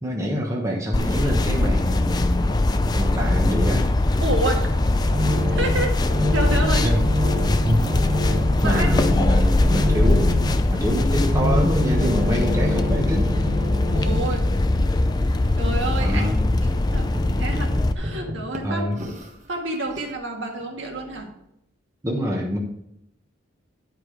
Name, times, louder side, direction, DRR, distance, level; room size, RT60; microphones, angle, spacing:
voice 1, 0.0-2.5 2.9-3.9 6.8-7.0 7.6-7.8 8.6-10.4 10.7-13.3 16.0-16.5 18.6-19.0 22.0-22.6, equal, 15° right, -1 dB, 1.2 m, -25 dB
sound 1, 0.9-17.9, left 2 dB, 20° left, 0.4 m, -21 dB
voice 2, 4.2-4.8 5.2-5.9 6.3-6.9 8.3-8.9 13.9-14.5 15.6-16.3 16.9-17.1 17.4-18.9 19.5-21.3, right 2 dB, 65° right, 1 dB, 1.8 m, -28 dB
sound 2, 4.7-14.2 14.5-19.3 19.7-20.1 20.8-21.1, left 1 dB, 35° right, 1.4 m, -28 dB
11.0 x 4.9 x 4.9 m, 0.78 s
head